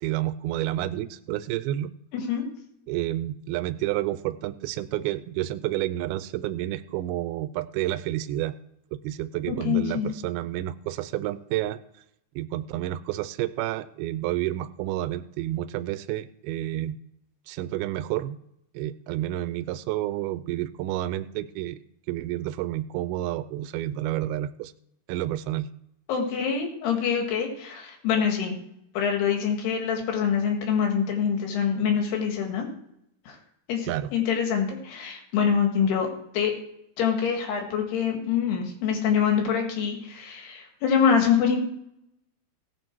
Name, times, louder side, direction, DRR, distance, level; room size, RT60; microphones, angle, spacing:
voice 1, 0.0-1.9 2.9-8.5 8.9-11.8 12.4-17.0 17.5-18.4 18.7-21.8 22.1-24.7 25.1-25.7 33.8-34.1, right 14 dB, 85° right, 12 dB, 2.5 m, -30 dB
voice 2, 2.1-2.5 9.5-10.1 26.1-28.6 29.0-32.7 33.3-33.4 33.7-36.1 36.3-36.5 37.0-41.6, left 7 dB, 90° left, 3 dB, 4.0 m, -25 dB
17.0 x 7.8 x 4.6 m, 0.76 s
omnidirectional pair, 4.5 m